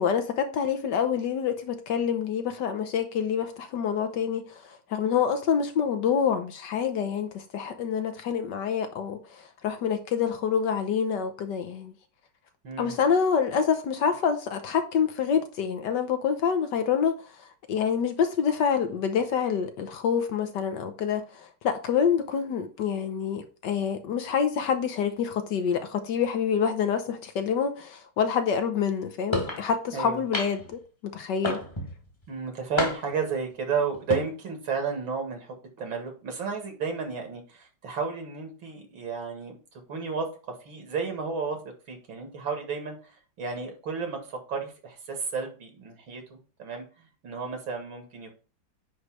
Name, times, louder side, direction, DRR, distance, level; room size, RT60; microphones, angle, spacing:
voice 1, 0.0-11.9 12.8-17.2 17.7-31.6, left 7 dB, 65° left, 1.4 m, -27 dB
voice 2, 12.6-12.9 29.9-30.2 32.3-39.6 39.9-40.3 40.6-41.6 41.9-48.3, right 5 dB, 75° right, 2.8 m, -32 dB
sound 1, 29.3-29.6 30.3-30.7 31.4-31.9 32.8-33.2 33.9-34.2, left 1 dB, 15° left, 1.1 m, -29 dB
9.5 x 3.2 x 6.2 m
omnidirectional pair, 2.2 m